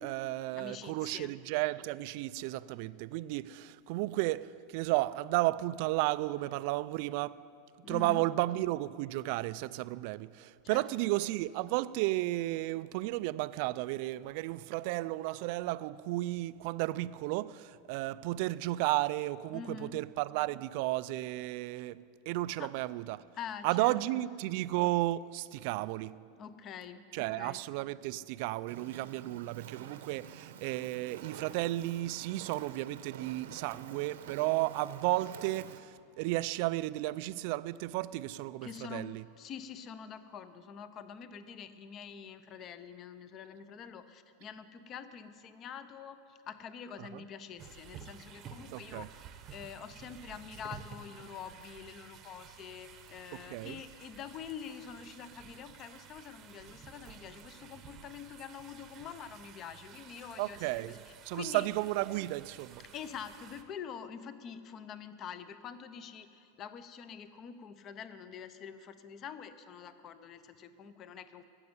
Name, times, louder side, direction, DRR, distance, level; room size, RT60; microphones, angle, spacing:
voice 1, 0.0-7.4 7.9-23.2 23.6-26.2 27.1-39.2 47.0-47.2 48.7-49.1 53.5-53.8 60.4-60.9 61.3-62.8, right 18 dB, 45° right, 0.3 m, -33 dB
voice 2, 0.5-1.3 7.8-8.2 10.6-10.8 19.5-20.0 22.6-22.7 23.3-24.2 26.4-27.6 38.6-39.1 39.3-49.2 49.5-61.0 61.3-61.7 62.9-71.4, left 7 dB, 25° left, 0.6 m, -46 dB
Fire, 28.7-35.8, right 9 dB, 85° right, 0.9 m, -49 dB
sound 1, 47.6-63.6, right 8 dB, 25° right, 0.8 m, -52 dB
14.5 x 7.9 x 9.6 m
supercardioid pair, 170°, 0 cm